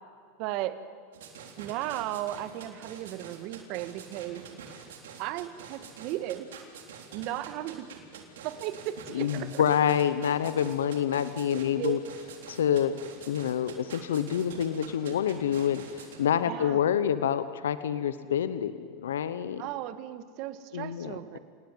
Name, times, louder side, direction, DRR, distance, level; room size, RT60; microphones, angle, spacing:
voice 1, 0.4-0.8 1.6-4.5 5.2-6.5 7.1-7.9 8.4-9.6 11.5-12.0 16.5-16.8 19.6-21.4, right 14 dB, 55° right, 12 dB, 1.6 m, -35 dB
sound 1, 1.1-16.2, right 7 dB, 80° right, 3.8 m, -46 dB
voice 2, 9.1-12.0 12.5-13.0 13.3-19.6 20.7-21.2, left 9 dB, 90° left, 13 dB, 0.9 m, -27 dB
28.0 x 18.5 x 9.3 m, 2.1 s
hypercardioid pair, 110°, 0 cm